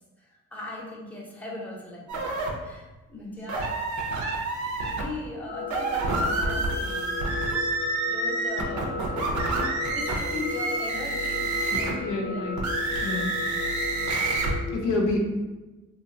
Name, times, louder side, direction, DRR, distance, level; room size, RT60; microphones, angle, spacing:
voice 1, 0.2-3.7 4.8-7.5 8.0-12.4, left 2 dB, 5° left, -3 dB, 0.6 m, -39 dB
sound 1, 2.1-2.5 3.5-5.0 5.6-12.0 12.5-14.5, right 2 dB, 70° right, 0.6 m, -28 dB
sound 2, 5.5-14.7, left 4 dB, 45° left, 0.4 m, -35 dB
voice 2, 11.7-12.6 13.0-13.3 14.7-15.3, left 2 dB, 85° left, -1 dB, 0.6 m, -28 dB
2.7 x 2.3 x 2.7 m, 1.2 s
cardioid pair, 90°, 30 cm